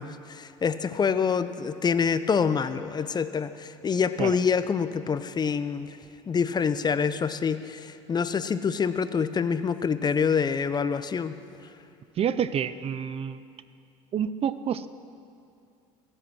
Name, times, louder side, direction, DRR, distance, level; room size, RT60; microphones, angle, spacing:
voice 1, 0.0-6.0 6.3-11.3, left 6 dB, 25° left, 12 dB, 0.6 m, -26 dB
voice 2, 12.2-13.4 14.1-14.9, right 8 dB, 40° right, 14 dB, 0.6 m, -28 dB
22.0 x 7.8 x 6.2 m, 2.4 s
supercardioid pair, 85°, 15 cm